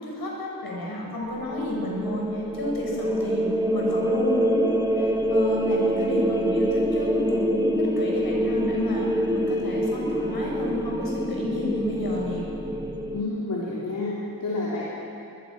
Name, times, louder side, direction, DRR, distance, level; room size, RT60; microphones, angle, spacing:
voice 1, 0.0-3.5 3.7-12.5, left 1 dB, 80° left, -2 dB, 7.0 m, -30 dB
sound 1, 1.3-13.2, right 1 dB, 10° right, 1.3 m, -26 dB
voice 2, 13.1-14.9, left 2 dB, 60° left, -7 dB, 3.8 m, -29 dB
23.5 x 20.5 x 6.2 m, 2.9 s
wide cardioid pair, 130°, 36 cm